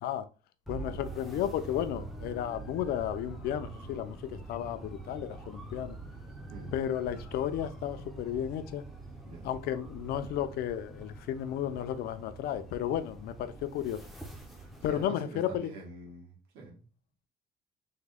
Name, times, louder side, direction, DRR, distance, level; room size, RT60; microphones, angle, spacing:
sound 1, 0.6-15.1, right 2 dB, ahead, 0.4 m, -45 dB
voice 1, 0.7-6.0 6.7-8.8 9.4-14.0 14.8-15.7, left 10 dB, 65° left, 0.4 m, -33 dB
voice 2, 14.6-16.9, right 3 dB, 75° right, 1.1 m, -45 dB
3.5 x 2.1 x 3.4 m
cardioid pair, 155°, 17 cm